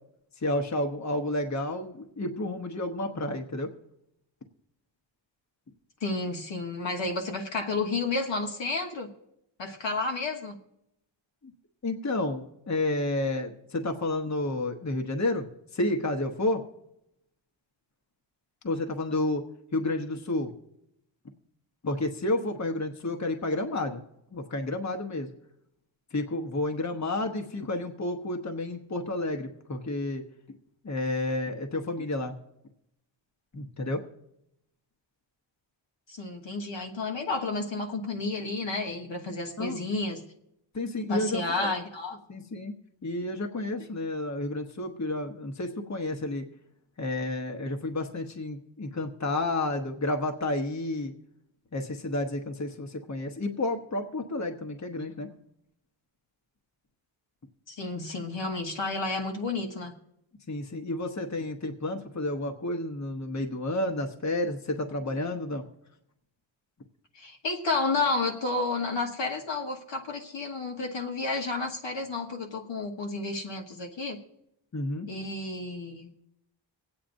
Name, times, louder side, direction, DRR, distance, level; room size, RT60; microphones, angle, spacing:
voice 1, 0.4-3.7 11.8-15.5 15.7-16.6 18.6-19.4 19.7-20.5 21.8-24.0 24.3-25.3 26.1-30.2 30.8-32.3 33.5-34.0 39.6-39.8 40.7-41.7 42.3-42.7 43.0-46.4 47.0-51.1 51.7-55.3 60.5-65.6 74.7-75.1, left 2 dB, 35° left, 1.0 m, -30 dB
voice 2, 6.0-9.1 9.6-10.5 36.1-40.2 41.1-42.2 57.7-60.0 67.1-74.2 75.1-76.1, left 3 dB, 65° left, 1.3 m, -31 dB
25.0 x 8.8 x 2.6 m
wide cardioid pair, 70°, 47 cm